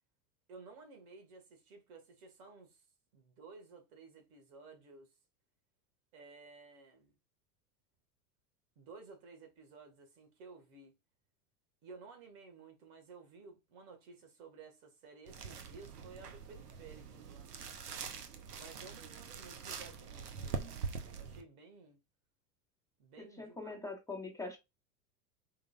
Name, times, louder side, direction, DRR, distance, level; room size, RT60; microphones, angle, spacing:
voice 1, 0.5-2.9 3.1-5.1 6.1-7.2 8.8-11.0 11.8-17.5 18.5-20.9 21.1-22.0 23.0-23.8, right 4 dB, 70° right, 1.9 m, -55 dB
sound 1, 15.3-21.4, right 6 dB, 90° right, 0.9 m, -44 dB
voice 2, 23.2-24.6, left 3 dB, 5° left, 1.2 m, -43 dB
4.9 x 3.8 x 2.4 m
hypercardioid pair, 90°, 46 cm